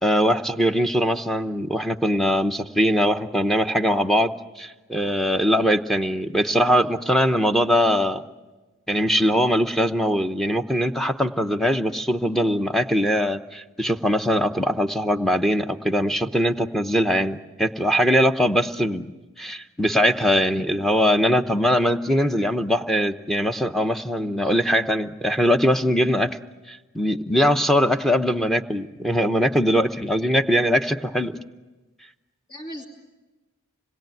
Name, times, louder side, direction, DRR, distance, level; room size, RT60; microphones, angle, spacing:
voice 1, 0.0-8.2 8.9-19.1 19.4-26.4 26.7-31.4, equal, ahead, 6 dB, 0.8 m, -21 dB
voice 2, 20.2-20.5 24.4-24.5 32.5-32.8, equal, 45° left, -5 dB, 2.5 m, -40 dB
26.5 x 20.5 x 9.2 m, 1.2 s
head